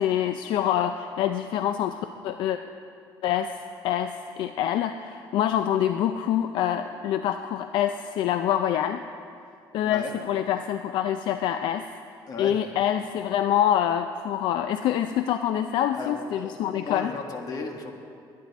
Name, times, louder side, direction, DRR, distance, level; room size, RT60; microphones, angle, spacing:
voice 1, 0.0-2.6 3.2-3.6 3.8-9.0 9.7-11.8 12.4-17.1, left 10 dB, 75° left, 8 dB, 0.4 m, -26 dB
voice 2, 12.3-12.6 15.9-17.9, left 4 dB, 45° left, 4 dB, 1.6 m, -35 dB
22.0 x 9.4 x 4.1 m, 2.4 s
cardioid pair, 125°, 8 cm